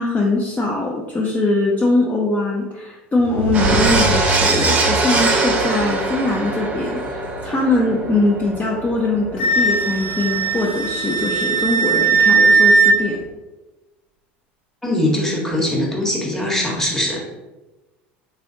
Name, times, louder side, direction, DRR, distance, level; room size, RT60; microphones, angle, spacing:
voice 1, 0.0-13.2, left 2 dB, 25° left, -2 dB, 0.6 m, -21 dB
sound 1, 3.2-6.1, right 2 dB, 85° right, 0.4 m, -25 dB
sound 2, 3.5-12.6 12.9-13.1, right 3 dB, 20° right, 0.7 m, -23 dB
Wind instrument woodwind instrument, 9.4-12.9, right 4 dB, 80° left, 0.8 m, -17 dB
voice 2, 14.8-17.2, left 1 dB, 5° left, -3 dB, 1.1 m, -21 dB
3.4 x 3.1 x 2.7 m, 1.1 s
hypercardioid pair, 85°, 6 cm